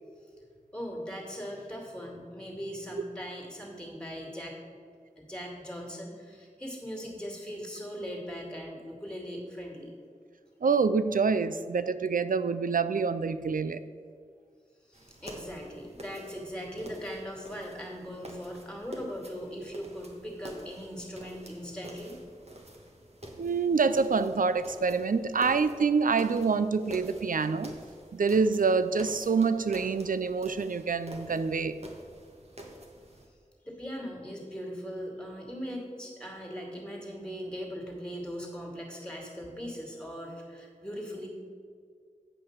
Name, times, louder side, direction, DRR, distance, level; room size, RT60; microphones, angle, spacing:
voice 1, 0.7-4.6 5.2-9.9 14.9-22.2 33.6-41.3, equal, 5° left, -1 dB, 2.4 m, -40 dB
voice 2, 10.6-13.8 23.4-27.7 28.1-31.8, right 5 dB, 85° right, 13 dB, 0.4 m, -26 dB
sound 1, 14.9-33.3, right 1 dB, 50° right, 1.4 m, -47 dB
8.5 x 5.6 x 6.6 m, 2.1 s
wide cardioid pair, 50°, 14 cm